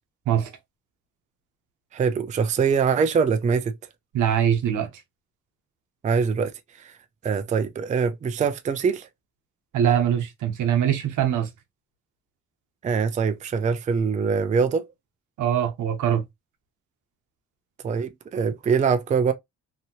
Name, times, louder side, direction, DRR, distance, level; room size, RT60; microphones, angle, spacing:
voice 1, 1.9-3.7 6.0-6.9 7.2-9.1 12.8-14.9 17.8-19.3, right 6 dB, 25° right, 0.4 m, -23 dB
voice 2, 4.1-4.9 9.7-11.5 15.4-16.2, right 9 dB, 80° right, 0.9 m, -22 dB
2.9 x 2.6 x 2.7 m
cardioid pair, 90°, 30 cm